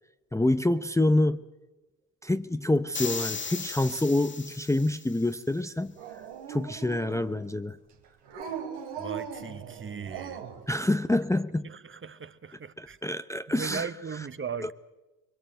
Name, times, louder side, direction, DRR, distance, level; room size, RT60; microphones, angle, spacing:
voice 1, 0.3-1.4 2.2-5.9 6.5-7.8 10.7-11.7 12.8-13.9 14.6-14.7, left 1 dB, 5° left, 0.7 m, -27 dB
sound 1, 2.9-5.2, left 4 dB, 25° left, 1.8 m, -36 dB
Dog, 6.0-7.5 8.3-10.6, right 7 dB, 85° right, 3.1 m, -39 dB
voice 2, 9.0-10.4 11.6-13.0 13.5-14.7, right 6 dB, 30° right, 1.1 m, -38 dB
22.0 x 22.0 x 7.9 m
supercardioid pair, 70°, 42 cm